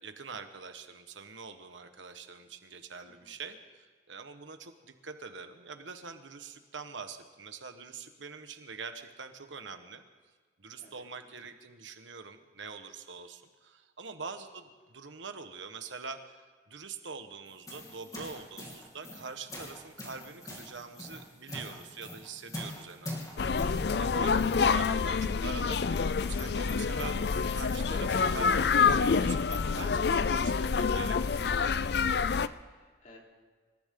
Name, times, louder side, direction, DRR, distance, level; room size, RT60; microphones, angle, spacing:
voice 1, 0.0-10.0 10.6-16.4 16.7-23.5 24.0-27.2 27.5-31.6, right 4 dB, 85° right, 8 dB, 1.3 m, -44 dB
sound 1, 17.5-24.7, left 1 dB, 20° left, 3.0 m, -44 dB
sound 2, 23.4-32.5, left 5 dB, 60° left, 0.4 m, -27 dB
voice 2, 32.2-33.2, left 1 dB, 40° left, -2 dB, 3.6 m, -59 dB
26.0 x 14.0 x 3.8 m, 1.5 s
head